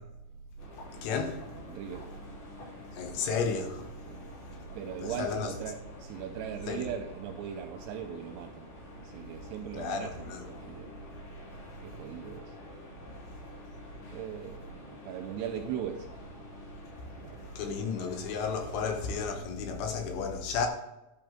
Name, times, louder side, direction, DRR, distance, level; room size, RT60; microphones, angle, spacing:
sound 1, 0.6-19.3, left 2 dB, 45° left, 4.3 m, -48 dB
voice 1, 1.0-1.4 2.9-3.9 5.0-5.5 6.7-6.8 9.8-10.5 17.6-20.7, left 5 dB, 75° left, 3.3 m, -32 dB
voice 2, 1.7-2.1 4.1-4.2 4.7-10.9 11.8-12.5 14.1-16.1 17.2-17.5, right 8 dB, 80° right, 2.5 m, -39 dB
11.5 x 6.0 x 3.6 m
omnidirectional pair, 5.3 m